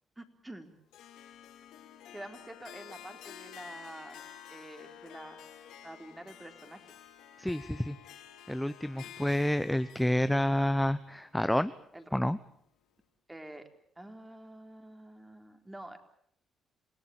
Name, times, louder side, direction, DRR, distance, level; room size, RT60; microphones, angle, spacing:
voice 1, 0.2-0.7 2.1-4.2 4.5-5.5 5.8-6.8 9.0-9.3 11.9-12.0 13.3-13.7 14.0-16.0, right 1 dB, 10° right, 6 dB, 4.1 m, -47 dB
Harp, 0.9-12.2, left 9 dB, 85° left, 4.7 m, -51 dB
voice 2, 7.4-8.0 8.5-11.7 12.1-12.4, left 1 dB, 5° left, 12 dB, 0.9 m, -29 dB
28.5 x 18.0 x 8.9 m, 0.68 s
cardioid pair, 90°, 0 cm